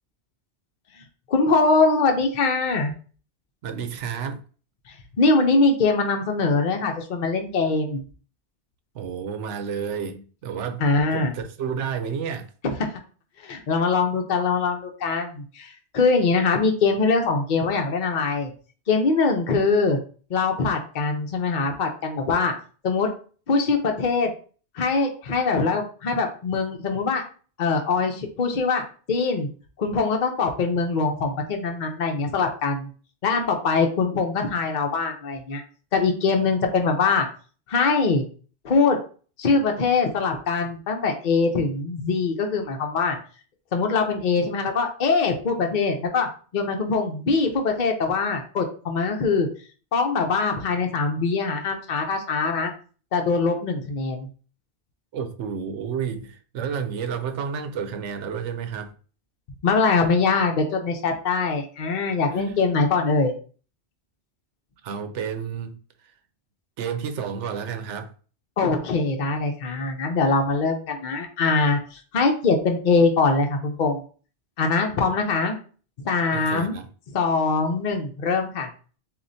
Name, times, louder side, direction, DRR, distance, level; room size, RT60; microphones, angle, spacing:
voice 1, 1.3-2.9 5.2-8.0 10.8-11.3 12.6-12.7 13.4-18.5 18.9-20.0 20.3-22.5 22.8-23.1 23.5-24.3 24.8-27.2 27.6-28.8 29.1-29.5 29.8-32.9 33.2-35.6 35.9-37.3 37.7-38.3 38.6-39.0 39.4-43.2 43.7-46.3 46.5-49.5 49.9-52.7 53.1-54.3 59.6-63.3 68.6-74.0 74.6-75.6 76.0-76.8 77.1-78.7, left 4 dB, 50° left, 0.8 m, -22 dB
voice 2, 3.6-4.4 8.9-10.9 11.1-12.5 55.1-58.9 62.3-62.6 64.8-65.8 66.8-68.1 76.3-76.9, right 6 dB, 90° right, 1.0 m, -30 dB
7.2 x 2.5 x 2.7 m
omnidirectional pair, 1.2 m